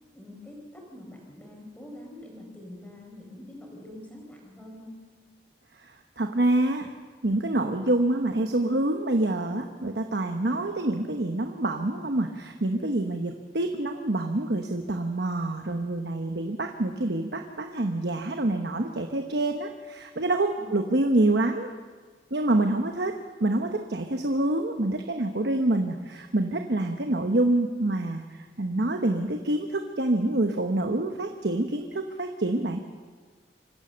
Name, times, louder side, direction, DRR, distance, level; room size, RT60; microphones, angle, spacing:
voice 1, 0.1-5.0 20.6-20.8, left 1 dB, 10° left, -1 dB, 4.2 m, -45 dB
voice 2, 5.8-6.9 7.2-21.7 22.3-23.1 23.4-32.8, right 2 dB, 70° right, 5 dB, 1.1 m, -26 dB
26.0 x 15.5 x 6.9 m, 1.5 s
head